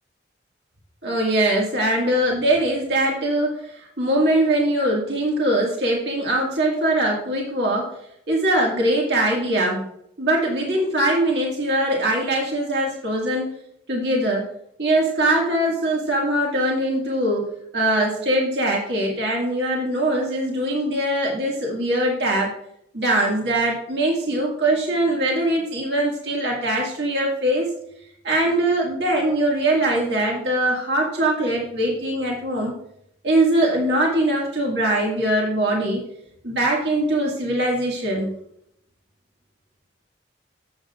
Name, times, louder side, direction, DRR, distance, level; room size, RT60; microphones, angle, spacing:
voice 1, 1.0-7.9 8.3-9.8 10.2-13.5 13.9-14.4 14.8-17.5 17.7-22.5 22.9-27.7 28.2-32.7 33.2-36.0 36.4-38.3, right 1 dB, 65° right, -2 dB, 1.9 m, -22 dB
13.0 x 8.0 x 2.4 m, 0.72 s
head